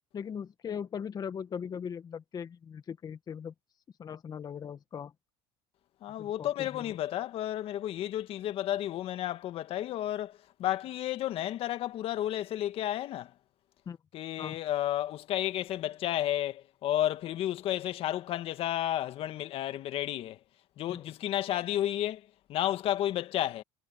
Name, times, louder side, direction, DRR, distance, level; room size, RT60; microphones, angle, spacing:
voice 1, 0.1-3.5 4.0-5.1 6.2-6.9 13.9-14.0 14.4-14.6 20.9-21.0, left 7 dB, 35° left, 1.8 m, -39 dB
voice 2, 6.0-13.3 14.1-20.4 20.8-22.2 22.5-23.6, left 12 dB, 55° left, 1.9 m, -32 dB
supercardioid pair, 95°, 12 cm